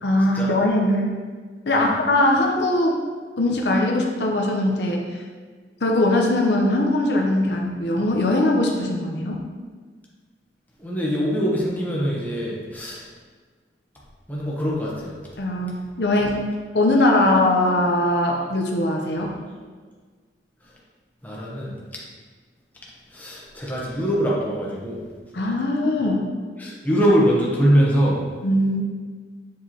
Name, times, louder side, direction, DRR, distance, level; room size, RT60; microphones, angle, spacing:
voice 1, 0.0-1.1 1.7-3.0 3.4-5.0 5.8-9.4 15.4-16.4 16.7-19.4 25.3-26.3 28.4-28.8, left 1 dB, 70° left, 0 dB, 0.8 m, -21 dB
voice 2, 10.8-13.0 14.3-15.2 21.2-21.7 23.1-25.0 26.6-28.2, equal, 10° left, -5 dB, 1.0 m, -22 dB
7.4 x 4.7 x 2.9 m, 1.5 s
head